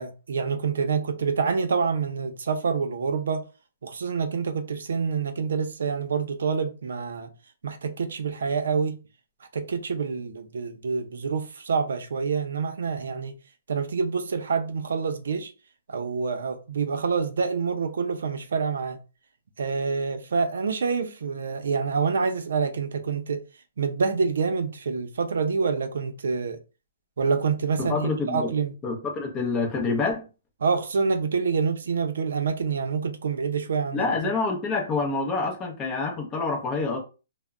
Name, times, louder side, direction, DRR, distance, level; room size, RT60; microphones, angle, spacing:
voice 1, 0.0-3.4 3.8-7.3 7.6-9.0 9.5-13.3 13.7-15.5 15.9-19.0 19.6-23.4 23.8-26.6 27.2-28.7 30.6-34.3, right 5 dB, 75° right, 0.5 m, -27 dB
voice 2, 27.8-28.5 28.8-30.2 33.9-37.0, left 4 dB, 15° left, 0.6 m, -27 dB
2.2 x 2.0 x 3.5 m
hypercardioid pair, 170°, 0 cm